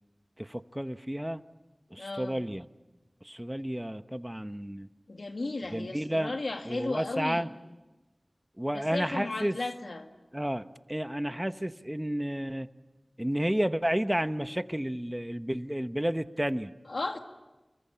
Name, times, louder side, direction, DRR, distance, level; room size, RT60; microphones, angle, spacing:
voice 1, 0.4-1.4 1.9-2.6 3.2-4.9 5.7-6.3 6.7-7.5 8.6-9.6 10.3-12.7 13.2-16.7, equal, 15° right, 11 dB, 1.0 m, -31 dB
voice 2, 2.0-2.4 5.1-7.5 8.7-10.1 16.9-17.2, left 2 dB, 85° left, 5 dB, 2.2 m, -35 dB
29.0 x 22.0 x 8.6 m, 1.1 s
wide cardioid pair, 40°, 0 cm